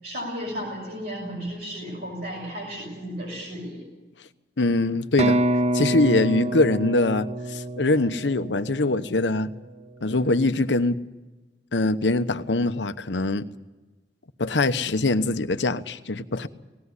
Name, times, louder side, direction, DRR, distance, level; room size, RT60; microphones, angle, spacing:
voice 1, 0.0-3.8, equal, 60° right, -3 dB, 6.5 m, -34 dB
voice 2, 4.6-5.4 5.7-9.5 10.0-11.0 11.7-13.4 14.4-16.5, left 2 dB, 85° left, 11 dB, 1.0 m, -23 dB
sound 1, 5.2-9.0, right 1 dB, 40° right, 0.8 m, -26 dB
19.5 x 16.0 x 9.7 m, 1.2 s
head